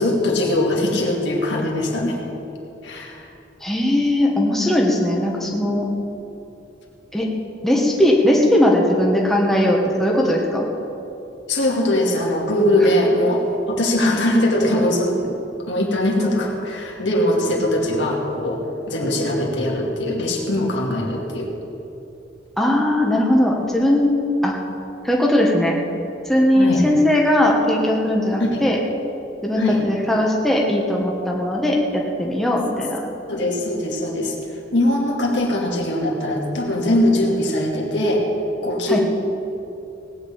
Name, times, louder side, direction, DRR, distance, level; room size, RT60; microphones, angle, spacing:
voice 1, 0.0-2.2 2.8-3.3 11.5-15.3 15.7-21.5 26.6-26.8 28.4-28.6 29.5-29.9 33.3-34.3 34.7-38.3 38.6-39.0, left 1 dB, 70° left, -1 dB, 2.5 m, -21 dB
voice 2, 3.6-5.9 7.1-7.3 7.6-10.7 22.6-24.5 25.0-25.8 26.3-28.8 29.4-33.0 38.9-39.0, left 1 dB, ahead, -2 dB, 1.4 m, -19 dB
18.5 x 6.6 x 8.8 m, 2.9 s
head